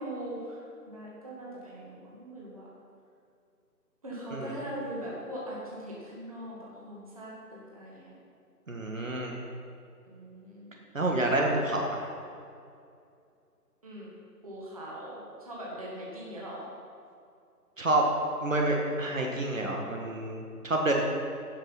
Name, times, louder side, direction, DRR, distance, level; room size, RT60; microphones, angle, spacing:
voice 1, 0.0-2.7 4.0-8.1 10.1-10.9 11.2-11.5 13.8-14.1 14.4-16.7, right 1 dB, 20° right, -5 dB, 1.9 m, -41 dB
voice 2, 8.7-9.3 10.9-12.1 17.8-18.0 18.4-20.9, right 2 dB, 55° right, 0 dB, 1.6 m, -28 dB
15.5 x 6.0 x 5.7 m, 2.4 s
figure-of-eight pair, 175°, 47 cm